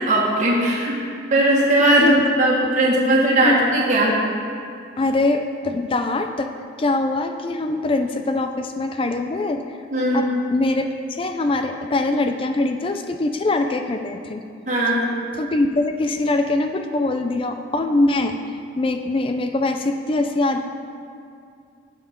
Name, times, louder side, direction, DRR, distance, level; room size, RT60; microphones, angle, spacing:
voice 1, 0.1-1.0 1.3-4.2 9.9-10.3 14.7-15.1, right 1 dB, 40° right, -4 dB, 1.6 m, -18 dB
voice 2, 5.0-6.5 6.8-9.8 10.1-10.3 10.5-14.4 15.3-20.6, left 2 dB, 30° left, 6 dB, 0.4 m, -23 dB
12.0 x 7.8 x 3.7 m, 2.3 s
head